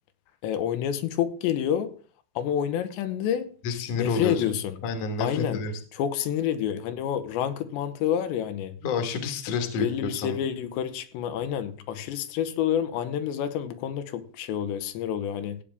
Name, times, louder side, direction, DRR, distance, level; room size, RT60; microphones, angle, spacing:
voice 1, 0.4-1.9 2.4-3.5 4.0-4.8 5.2-5.6 5.9-8.7 9.5-15.6, left 10 dB, 85° left, 3.1 m, -28 dB
voice 2, 3.6-4.4 4.8-5.8 8.8-10.4, left 4 dB, 55° left, 2.0 m, -29 dB
16.0 x 8.6 x 3.5 m
omnidirectional pair, 4.9 m